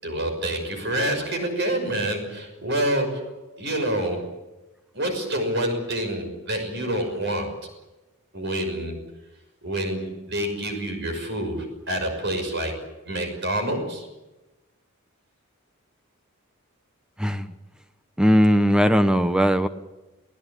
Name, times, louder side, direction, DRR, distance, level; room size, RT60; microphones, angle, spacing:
voice 1, 0.0-4.3 4.9-7.5 8.3-9.0 9.6-12.8 13.1-14.1, right 1 dB, 55° right, 5 dB, 6.1 m, -27 dB
voice 2, 18.2-19.7, equal, 5° right, 9 dB, 1.0 m, -18 dB
28.5 x 17.0 x 8.5 m, 1.0 s
head